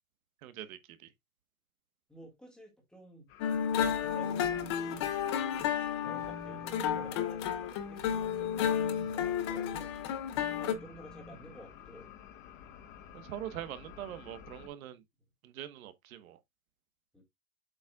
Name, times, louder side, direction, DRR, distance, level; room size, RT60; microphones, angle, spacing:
voice 1, 0.4-1.1 13.1-15.0 15.4-16.4, right 12 dB, 70° right, 1.3 m, -43 dB
voice 2, 2.1-3.3 3.8-5.7 6.0-9.9 10.5-12.1 17.1-17.2, equal, ahead, 1.8 m, -52 dB
sound 1, 3.3-14.7, left 8 dB, 40° left, 1.3 m, -53 dB
sound 2, 3.4-10.7, left 9 dB, 20° left, 0.4 m, -32 dB
Telephone, 4.0-5.0 5.4-5.7 6.0-12.1, equal, 85° left, 2.8 m, -51 dB
7.7 x 6.0 x 2.3 m
supercardioid pair, 165°, 43 cm